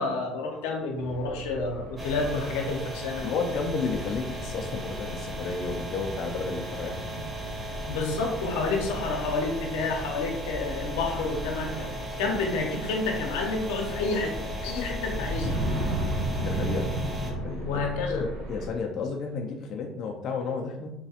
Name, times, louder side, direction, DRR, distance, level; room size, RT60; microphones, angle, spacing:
voice 1, 0.0-3.3 7.9-11.9 12.2-15.6 17.6-18.2, left 3 dB, 90° left, 1 dB, 0.7 m, -29 dB
sound 1, 1.0-18.7, right 1 dB, 90° right, 0.9 m, -36 dB
sound 2, 2.0-17.3, equal, 15° right, 1.1 m, -37 dB
voice 2, 3.2-7.0 16.3-16.9 17.2-17.8 18.1-20.9, left 4 dB, 55° left, 1 dB, 0.4 m, -32 dB
4.1 x 2.3 x 2.8 m, 0.87 s
supercardioid pair, 95°, 0 cm